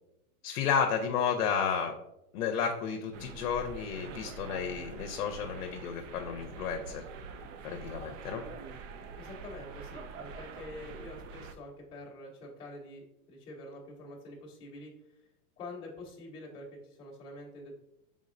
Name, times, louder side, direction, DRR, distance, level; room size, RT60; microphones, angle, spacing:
voice 1, 0.4-1.9 2.3-7.0 7.6-8.4, left 7 dB, 65° left, 4 dB, 0.7 m, -32 dB
sound 1, 3.1-11.5, right 5 dB, 55° right, 0.5 m, -45 dB
voice 2, 9.2-14.9 15.6-17.7, left 1 dB, 10° left, -10 dB, 0.8 m, -46 dB
5.2 x 3.6 x 2.6 m, 0.85 s
supercardioid pair, 165°, 46 cm